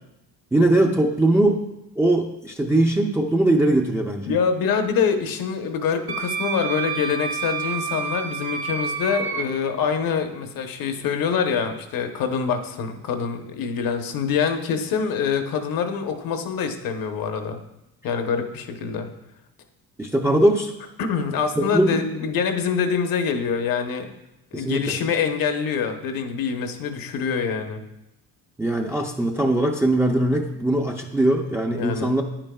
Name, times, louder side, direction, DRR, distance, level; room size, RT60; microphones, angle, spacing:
voice 1, 0.5-1.7 2.0-4.3 20.0-20.7 21.6-22.0 24.5-25.0 28.6-32.2, right 1 dB, 5° right, 1 dB, 0.5 m, -21 dB
voice 2, 4.3-17.6 18.0-19.1 21.0-24.1 24.5-27.8 31.7-32.1, left 6 dB, 60° left, 6 dB, 1.0 m, -25 dB
Wind instrument woodwind instrument, 6.1-9.4, right 6 dB, 70° right, 1.4 m, -29 dB
9.6 x 8.8 x 2.3 m, 0.91 s
cardioid pair, 110°, 39 cm